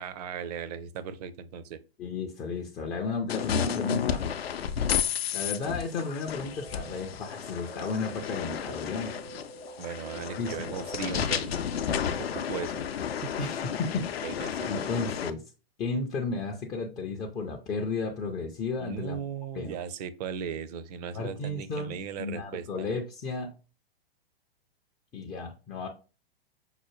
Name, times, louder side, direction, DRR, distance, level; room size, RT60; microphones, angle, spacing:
voice 1, 0.0-1.8 9.8-11.6 12.5-12.8 13.2-13.3 14.2-14.9 18.8-22.9, right 7 dB, 45° right, 0.5 m, -37 dB
voice 2, 2.0-4.3 5.3-9.1 10.4-10.7 13.4-14.4 14.7-15.4 15.8-19.2 19.5-19.8 21.1-23.6 25.1-25.9, left 4 dB, 15° left, 0.3 m, -33 dB
sound 1, 3.3-15.3, left 8 dB, 80° left, 0.5 m, -32 dB
sound 2, 6.3-14.3, right 5 dB, 85° right, 1.2 m, -48 dB
5.5 x 2.1 x 3.0 m
hypercardioid pair, 115°, 30 cm